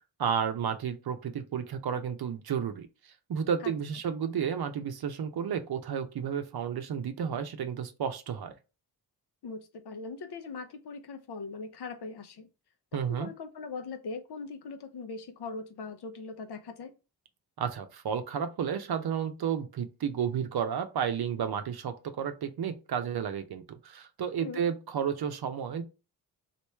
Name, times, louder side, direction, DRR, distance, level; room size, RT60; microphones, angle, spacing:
voice 1, 0.2-2.9 3.3-8.5 12.9-13.3 17.6-25.8, right 7 dB, 60° right, 0.7 m, -32 dB
voice 2, 9.4-12.5 12.9-16.9 24.4-24.6, left 4 dB, 65° left, 0.8 m, -40 dB
3.1 x 2.6 x 3.4 m
supercardioid pair, 45°, 42 cm